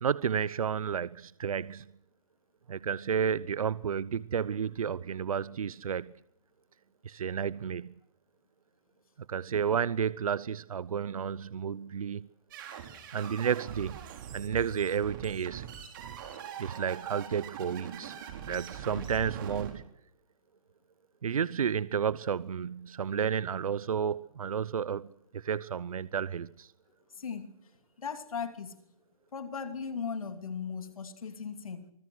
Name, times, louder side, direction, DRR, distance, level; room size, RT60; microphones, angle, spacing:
voice 1, 0.0-1.8 2.7-6.1 7.0-7.9 9.3-12.3 13.1-14.0 14.3-15.7 16.6-18.2 18.5-19.8 21.2-25.1 25.3-26.7, right 7 dB, 80° right, 0.8 m, -31 dB
sound 1, 12.5-19.7, right 9 dB, 35° right, 5.0 m, -43 dB
voice 2, 18.9-19.2 27.1-27.7 28.0-28.8 29.3-31.9, left 6 dB, 80° left, 3.0 m, -38 dB
25.5 x 20.5 x 6.2 m
hypercardioid pair, 160°, 18 cm